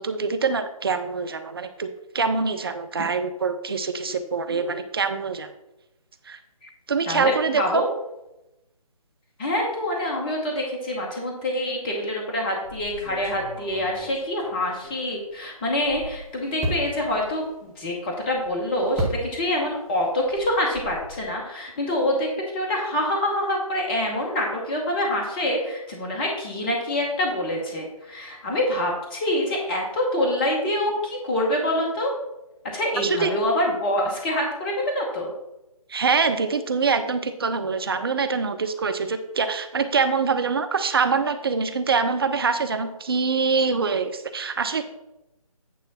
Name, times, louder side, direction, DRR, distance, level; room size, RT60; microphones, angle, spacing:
voice 1, 0.0-1.9 2.1-5.5 6.3-6.4 6.9-7.9 33.0-33.3 35.9-44.8, right 5 dB, 40° right, 9 dB, 0.6 m, -24 dB
voice 2, 7.1-7.9 9.4-32.1 32.7-35.3, left 1 dB, 15° left, 0 dB, 0.9 m, -26 dB
sound 1, 12.6-15.3 15.7-19.8 20.0-21.3, equal, ahead, 1.2 m, -35 dB
9.3 x 3.2 x 5.9 m, 0.94 s
figure-of-eight pair, 150°, 19 cm